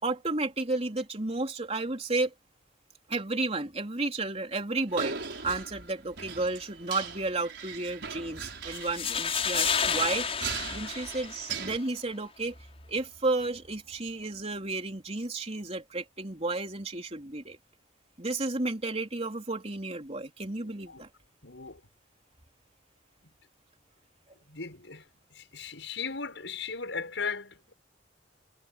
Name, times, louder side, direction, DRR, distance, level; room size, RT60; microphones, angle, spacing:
voice 1, 0.0-2.3 3.1-5.2 5.4-10.3 10.7-12.6 12.9-17.6 18.2-21.1, right 2 dB, 35° right, 3.5 m, -32 dB
sound 1, 4.9-11.8, right 5 dB, 65° right, 6.0 m, -39 dB
sound 2, 8.7-11.7, left 6 dB, 35° left, 6.1 m, -30 dB
voice 2, 21.4-21.8 23.2-23.3 24.5-25.1 25.3-27.7, left 5 dB, 80° left, 6.4 m, -37 dB
head